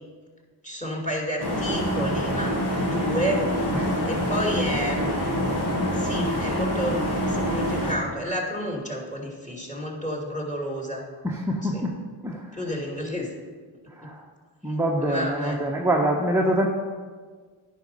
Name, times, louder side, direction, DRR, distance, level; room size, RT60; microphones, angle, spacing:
voice 1, 0.6-2.6 2.8-3.5 4.0-5.4 6.0-11.0 11.6-11.9 12.5-13.3 14.0-14.1 15.0-15.6, equal, 15° left, -1 dB, 2.8 m, -30 dB
sound 1, 1.4-7.9, equal, 55° left, 2.3 m, -26 dB
voice 2, 11.2-12.0 12.2-12.4 14.0-14.2 14.6-16.7, right 1 dB, 5° right, -1 dB, 1.1 m, -25 dB
10.0 x 5.4 x 5.5 m, 1.5 s
supercardioid pair, 55°, 48 cm